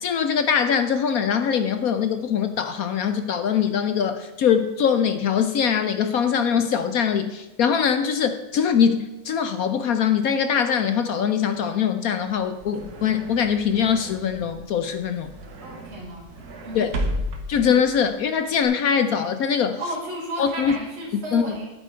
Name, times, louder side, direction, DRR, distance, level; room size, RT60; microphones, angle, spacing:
voice 1, 0.0-15.3 16.7-16.9 17.5-19.8 20.4-20.8 21.3-21.5, left 7 dB, 70° left, 9 dB, 0.8 m, -22 dB
sound 1, 12.3-18.6, equal, 55° right, 1.6 m, -34 dB
voice 2, 15.6-16.3 16.6-17.0 19.8-21.7, equal, 85° right, -6 dB, 3.2 m, -33 dB
11.0 x 8.9 x 4.4 m, 1.1 s
omnidirectional pair, 2.2 m